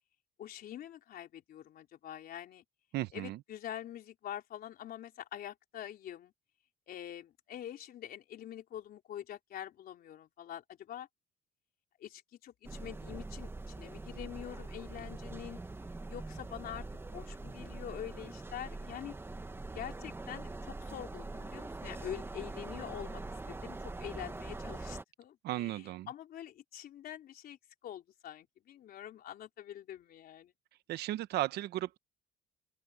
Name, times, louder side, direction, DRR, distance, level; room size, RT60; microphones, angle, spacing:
voice 1, 0.4-2.6 3.1-6.3 6.9-11.1 12.0-15.6 16.1-19.1 19.7-23.2 23.5-27.6 27.8-30.5, left 11 dB, 60° left, 3.5 m, -45 dB
voice 2, 2.9-3.4 25.4-26.1 30.9-32.0, right 15 dB, 75° right, 1.0 m, -35 dB
sound 1, 12.6-25.0, right 2 dB, 15° right, 1.1 m, -43 dB
open air
cardioid pair, 110°, 17 cm